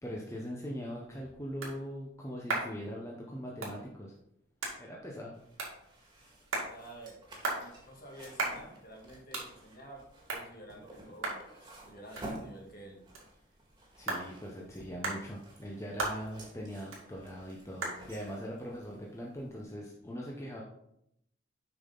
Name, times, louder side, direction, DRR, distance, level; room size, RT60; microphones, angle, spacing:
voice 1, 0.0-4.1 4.8-5.4 13.9-20.6, equal, 15° left, -3 dB, 0.8 m, -41 dB
sound 1, 0.7-20.0, right 2 dB, 90° right, 2.1 m, -42 dB
sound 2, 5.3-19.6, right 1 dB, 20° right, 1.8 m, -52 dB
voice 2, 6.7-7.2 7.6-10.0 10.3-13.0, right 1 dB, 45° left, -1 dB, 1.9 m, -50 dB
6.9 x 5.5 x 3.9 m, 0.78 s
head